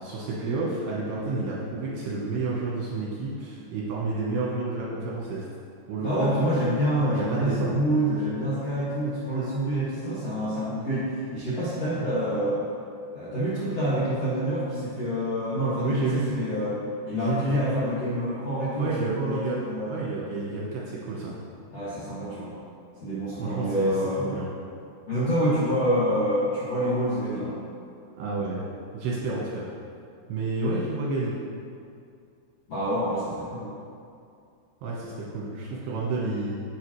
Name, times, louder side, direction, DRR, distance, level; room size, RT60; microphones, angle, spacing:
voice 1, 0.0-5.4 5.9-6.4 7.1-7.7 15.8-16.3 17.1-17.7 18.8-19.6 19.9-21.4 23.4-23.9 24.2-24.5 28.2-28.6 28.9-29.7 30.3-31.4 34.8-36.6, right 3 dB, 70° right, -5 dB, 2.7 m, -30 dB
voice 2, 5.9-12.6 13.1-16.7 17.0-20.0 21.7-22.5 23.0-24.3 25.1-27.5 32.7-33.7, equal, 50° left, -11 dB, 1.9 m, -27 dB
10.5 x 8.4 x 3.1 m, 2.4 s
omnidirectional pair, 5.7 m